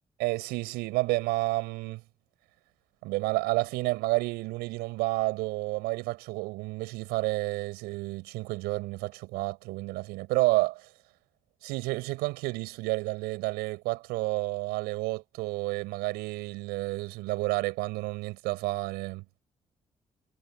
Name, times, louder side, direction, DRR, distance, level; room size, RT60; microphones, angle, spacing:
voice 1, 0.2-2.0 3.0-10.9 11.6-19.2, right 22 dB, 80° right, 6.4 m, -30 dB
hypercardioid pair, 45°, 16 cm